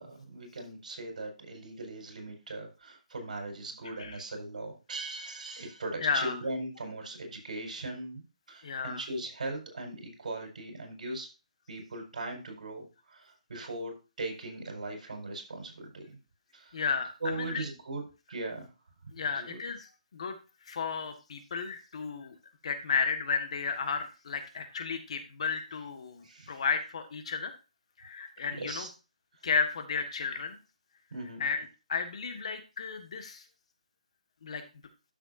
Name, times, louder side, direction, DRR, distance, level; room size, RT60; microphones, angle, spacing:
voice 1, 0.0-11.3 11.7-16.2 16.5-16.8 17.2-18.0 18.3-18.7 19.3-19.6 26.2-26.6 28.6-28.9 31.1-31.4, right 2 dB, 70° right, 3 dB, 4.9 m, -39 dB
voice 2, 6.0-6.4 8.6-9.0 16.7-17.6 19.1-20.4 20.7-22.3 22.6-27.5 28.0-28.9 29.4-30.6 31.4-33.4 34.4-34.6, left 5 dB, 50° left, 8 dB, 1.5 m, -33 dB
12.5 x 6.8 x 2.6 m, 0.30 s
hypercardioid pair, 170°, 4 cm